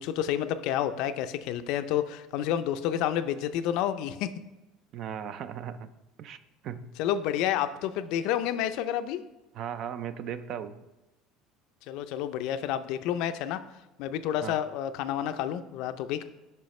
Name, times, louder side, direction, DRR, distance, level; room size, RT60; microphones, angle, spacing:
voice 1, 0.0-4.3 7.0-9.2 11.9-13.6 14.0-16.2, left 10 dB, 65° left, 11 dB, 0.4 m, -29 dB
voice 2, 4.9-5.9 6.2-6.4 6.6-6.9 9.5-10.8 14.4-14.5, right 8 dB, 45° right, 12 dB, 0.4 m, -37 dB
8.8 x 5.6 x 3.1 m, 1.0 s
cardioid pair, 155°, 0 cm